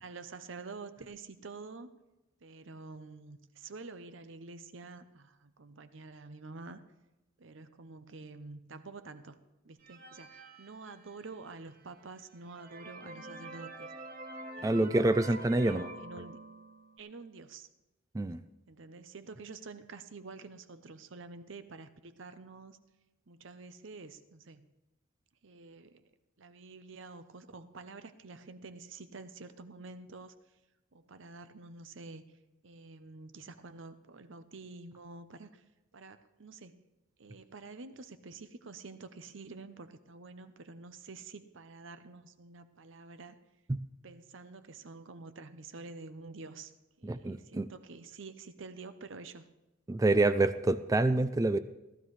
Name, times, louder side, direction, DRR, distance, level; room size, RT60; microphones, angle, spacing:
voice 1, 0.0-1.9 2.4-6.8 7.4-9.4 9.6-13.9 14.6-15.1 15.4-16.4 17.0-17.7 18.7-22.8 23.3-24.7 25.4-26.0 26.4-30.3 30.9-32.3 32.6-35.6 35.9-36.8 37.2-43.4 44.0-46.7 47.0-49.5, right 3 dB, 60° right, 11 dB, 0.7 m, -48 dB
sound 1, 9.8-11.4 12.0-12.1 12.5-17.0, right 2 dB, 45° right, 1.1 m, -46 dB
voice 2, 14.6-15.9 18.1-18.4 43.7-43.8 47.0-47.7 49.9-51.6, right 2 dB, 15° right, 12 dB, 0.3 m, -27 dB
18.0 x 12.5 x 3.2 m, 1.0 s
head